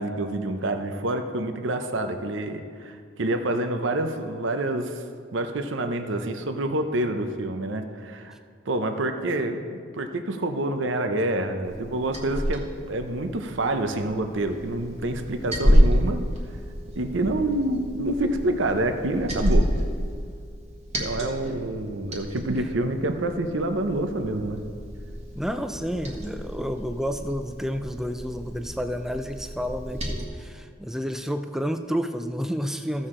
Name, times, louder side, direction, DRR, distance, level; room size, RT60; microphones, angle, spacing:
voice 1, 0.0-5.0 5.3-8.3 8.7-16.2 16.9-19.7 21.0-24.6, right 1 dB, 65° right, 7 dB, 0.7 m, -27 dB
Liquid, 11.6-30.2, equal, 35° right, 1.3 m, -29 dB
voice 2, 25.4-33.1, equal, ahead, 7 dB, 0.4 m, -30 dB
15.0 x 6.3 x 3.7 m, 2.1 s
head